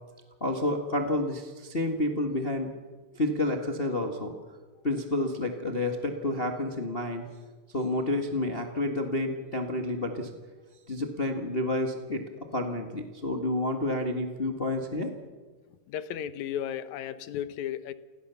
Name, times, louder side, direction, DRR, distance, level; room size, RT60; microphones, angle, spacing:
voice 1, 0.4-2.7 3.1-4.3 4.8-7.2 7.7-10.3 10.9-15.1, left 1 dB, 30° left, 4 dB, 1.1 m, -29 dB
voice 2, 15.9-17.9, left 10 dB, 70° left, 14 dB, 2.1 m, -34 dB
28.5 x 18.0 x 7.0 m, 1.4 s
omnidirectional pair, 3.8 m